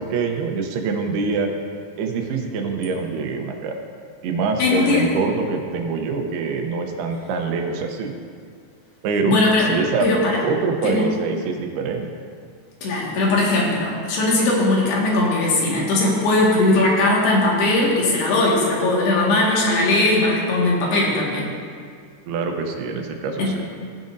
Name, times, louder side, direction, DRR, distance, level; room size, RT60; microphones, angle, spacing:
voice 1, 0.0-1.5 2.0-3.8 4.2-8.1 9.0-9.4 9.7-10.1 10.4-12.1 22.3-23.5, right 4 dB, 80° right, 3 dB, 2.8 m, -25 dB
voice 2, 4.6-5.1 9.3-9.7 10.0-10.4 10.8-11.1 12.8-21.5 23.4-23.5, left 2 dB, 85° left, -4 dB, 3.9 m, -19 dB
16.0 x 9.1 x 2.6 m, 2.1 s
omnidirectional pair, 4.5 m